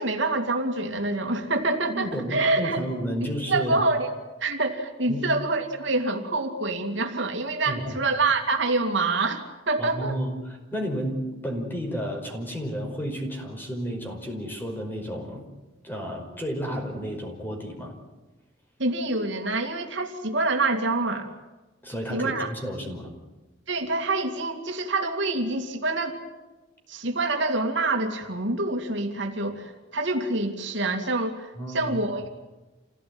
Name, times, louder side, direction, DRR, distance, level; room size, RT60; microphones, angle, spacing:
voice 1, 0.0-2.8 3.5-4.1 4.4-10.2 18.8-21.3 22.1-22.5 23.7-26.2 26.9-32.3, right 2 dB, 70° right, 4 dB, 2.6 m, -26 dB
voice 2, 1.9-3.8 5.1-5.2 7.6-8.0 9.8-15.4 15.8-17.9 21.8-23.1 31.6-32.0, equal, 10° left, 2 dB, 5.3 m, -32 dB
28.0 x 17.0 x 9.6 m, 1.1 s
head